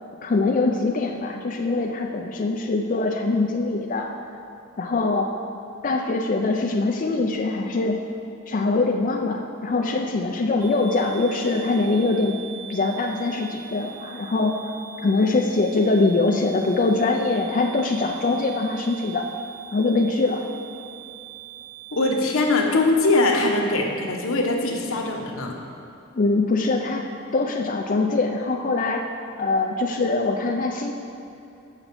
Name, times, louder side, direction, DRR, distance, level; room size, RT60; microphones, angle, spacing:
voice 1, 0.2-4.1 4.8-5.3 5.8-8.0 8.5-12.4 12.7-14.6 15.0-19.3 19.7-20.5 26.2-27.1 27.3-29.1 29.4-30.9, left 3 dB, 40° left, 2 dB, 0.4 m, -23 dB
sound 1, 10.6-22.0, right 10 dB, 45° right, 1.7 m, -42 dB
voice 2, 21.9-25.5, left 2 dB, 85° left, 0 dB, 1.0 m, -22 dB
5.8 x 5.7 x 6.8 m, 2.7 s
head